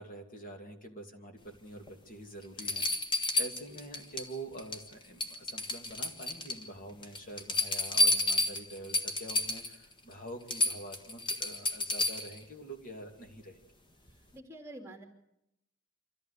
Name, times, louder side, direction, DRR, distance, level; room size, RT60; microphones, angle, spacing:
voice 1, 0.0-2.8 3.4-13.6, right 1 dB, 40° left, 4 dB, 2.5 m, -46 dB
sound 1, 1.9-2.0 2.6-4.3 4.6-4.9 5.2-6.6 7.0-9.8 10.1-10.2 10.5-12.4 14.1-14.2, left 2 dB, 20° left, 1.5 m, -30 dB
voice 2, 14.3-15.0, right 1 dB, 10° right, 1 dB, 2.8 m, -48 dB
25.5 x 14.5 x 8.3 m, 0.83 s
head